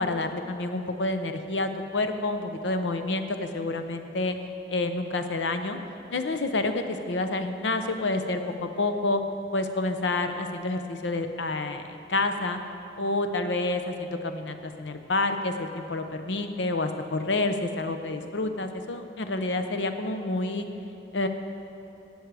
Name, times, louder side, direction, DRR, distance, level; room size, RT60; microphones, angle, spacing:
voice 1, 0.0-4.4 4.7-5.8 6.1-9.2 9.5-12.6 13.0-20.7 21.1-21.3, left 2 dB, 85° left, 7 dB, 0.8 m, -28 dB
17.5 x 6.4 x 4.8 m, 2.8 s
head